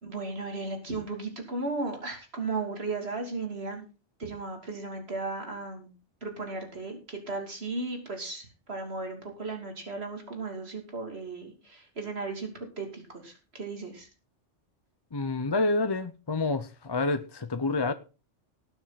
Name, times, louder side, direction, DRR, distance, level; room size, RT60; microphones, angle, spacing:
voice 1, 0.0-3.8 4.2-5.9 6.2-14.1, right 3 dB, 60° right, 3.0 m, -35 dB
voice 2, 15.1-17.9, left 3 dB, 30° left, 0.5 m, -28 dB
19.0 x 7.0 x 4.1 m
omnidirectional pair, 1.2 m